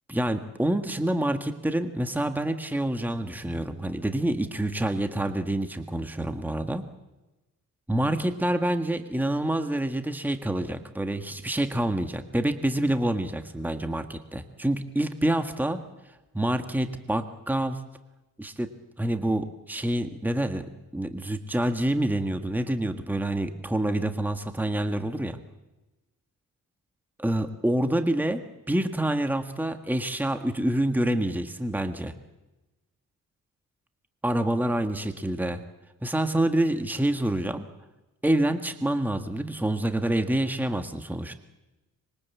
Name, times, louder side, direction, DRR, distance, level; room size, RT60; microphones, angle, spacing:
voice 1, 0.1-6.8 7.9-15.8 16.3-17.8 18.4-18.7 19.0-25.4 27.2-28.4 28.7-32.1 34.2-35.6 36.0-37.7 38.2-41.3, right 1 dB, 5° right, 7 dB, 1.6 m, -27 dB
25.0 x 23.0 x 8.5 m, 1.1 s
cardioid pair, 120°, 32 cm